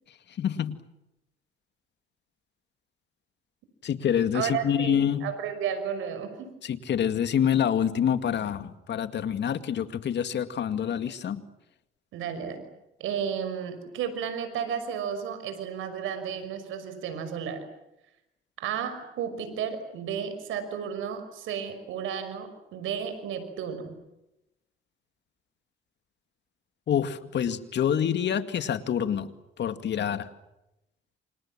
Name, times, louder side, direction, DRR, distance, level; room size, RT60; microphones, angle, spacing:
voice 1, 0.4-0.8 3.8-5.3 6.6-11.4 26.9-29.3 29.6-30.3, left 8 dB, 60° left, 10 dB, 2.2 m, -27 dB
voice 2, 4.3-6.5 12.1-12.6 13.0-17.6 18.6-23.9, right 8 dB, 90° right, 9 dB, 5.8 m, -33 dB
29.0 x 27.0 x 7.5 m, 0.90 s
cardioid pair, 90°, 20 cm